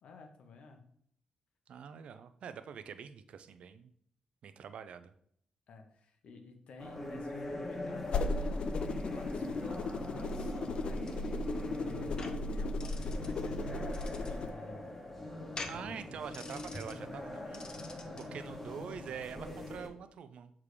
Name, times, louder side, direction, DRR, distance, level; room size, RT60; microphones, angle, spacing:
voice 1, 0.0-0.8 5.7-14.0 14.3-15.5 15.7-15.9, left 3 dB, 70° left, 4 dB, 1.1 m, -53 dB
voice 2, 1.7-3.9 4.4-5.1 15.7-20.5, right 7 dB, 70° right, 11 dB, 0.5 m, -45 dB
sound 1, 6.8-19.9, left 1 dB, 10° left, 1.3 m, -42 dB
sound 2, 8.0-14.5, left 2 dB, 55° left, 0.4 m, -36 dB
sound 3, 10.8-18.3, left 3 dB, 40° left, 0.9 m, -49 dB
6.6 x 3.6 x 4.8 m, 0.68 s
cardioid pair, 90°, 2 cm